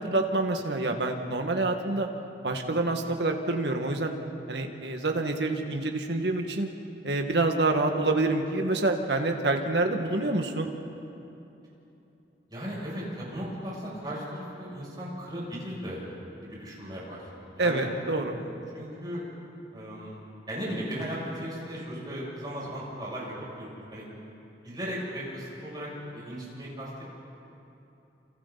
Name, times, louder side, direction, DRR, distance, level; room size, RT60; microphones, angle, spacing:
voice 1, 0.0-2.1 2.4-4.1 4.5-6.7 7.0-10.7 17.6-18.4, right 2 dB, 70° right, 3 dB, 2.0 m, -27 dB
voice 2, 12.5-16.0 16.5-17.9 18.4-19.2 19.7-20.2 20.5-24.0 24.6-26.9, equal, 25° right, -6 dB, 7.6 m, -37 dB
29.0 x 28.0 x 4.2 m, 2.9 s
head